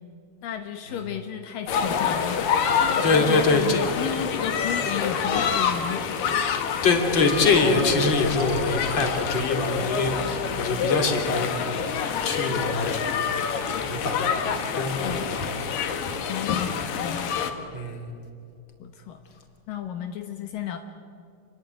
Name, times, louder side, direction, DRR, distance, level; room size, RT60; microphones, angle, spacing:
voice 1, 0.4-6.2 15.0-15.3 16.2-17.4 18.8-19.2 19.7-20.8, left 9 dB, 85° left, 6 dB, 1.9 m, -33 dB
sound 1, 1.7-17.5, left 6 dB, 60° left, 2.5 m, -27 dB
voice 2, 3.0-3.9 6.8-11.6 12.2-13.0 13.7-14.3 14.8-15.6 17.7-18.1, left 3 dB, 30° left, 4 dB, 2.8 m, -24 dB
sound 2, 7.3-12.2 13.2-13.3 13.5-14.2, right 1 dB, 20° right, 3.8 m, -43 dB
28.5 x 22.0 x 8.9 m, 2.5 s
omnidirectional pair, 5.8 m